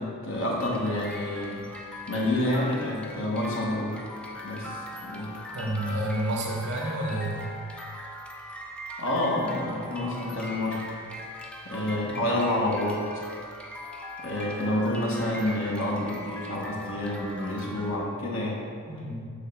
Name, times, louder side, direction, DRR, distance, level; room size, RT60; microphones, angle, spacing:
voice 1, 0.0-1.6 2.1-4.1 4.4-5.3 9.0-10.8 11.6-13.0 14.2-18.6, left 1 dB, 65° left, -3 dB, 1.5 m, -28 dB
sound 1, 0.6-18.0, left 1 dB, 5° left, 0.5 m, -41 dB
voice 2, 5.5-7.4 18.9-19.2, right 1 dB, 55° right, -2 dB, 1.5 m, -30 dB
7.0 x 3.8 x 5.7 m, 2.2 s
head